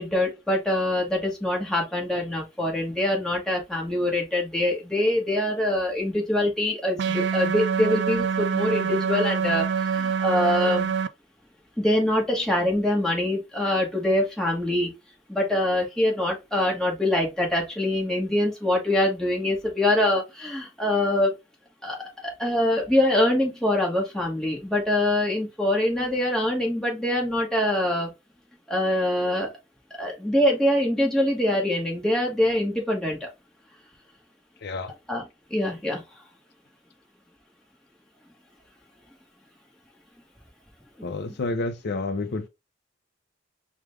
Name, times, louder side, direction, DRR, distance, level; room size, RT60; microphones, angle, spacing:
voice 1, 0.0-10.9 11.8-15.0 15.3-21.3 21.8-22.0 22.2-28.1 28.7-29.6 30.0-33.3 35.1-35.2 35.5-36.0 41.0-41.1, left 1 dB, 5° left, 1.1 m, -24 dB
sound 1, 7.0-11.1, right 6 dB, 60° right, 0.3 m, -25 dB
voice 2, 34.6-34.9 41.0-42.5, left 3 dB, 55° left, 0.5 m, -29 dB
4.8 x 2.2 x 3.4 m
head